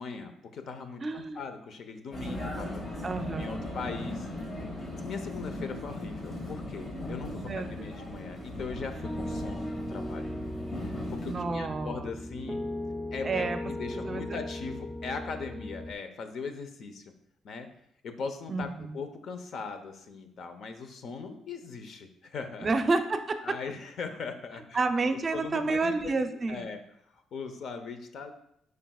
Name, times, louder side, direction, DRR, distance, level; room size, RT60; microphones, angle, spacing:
voice 1, 0.0-2.8 3.4-4.3 5.0-10.3 10.8-12.6 13.1-17.1 17.4-17.7 18.0-18.7 18.9-22.7 23.4-24.8 25.3-26.1 26.5-26.8 27.1-28.3, left 5 dB, 65° left, 8 dB, 0.8 m, -39 dB
voice 2, 1.0-1.4 2.2-2.5 3.0-3.7 7.4-7.9 11.2-12.1 13.2-13.6 13.9-14.4 18.5-19.0 22.6-23.4 24.7-26.7, right 3 dB, 35° right, 8 dB, 0.6 m, -30 dB
Vehicle, 2.1-11.4, left 1 dB, 40° left, 2.0 m, -38 dB
Piano, 9.0-15.9, left 1 dB, 5° left, 0.3 m, -37 dB
9.0 x 4.9 x 2.4 m, 0.74 s
cardioid pair, 90°, 0 cm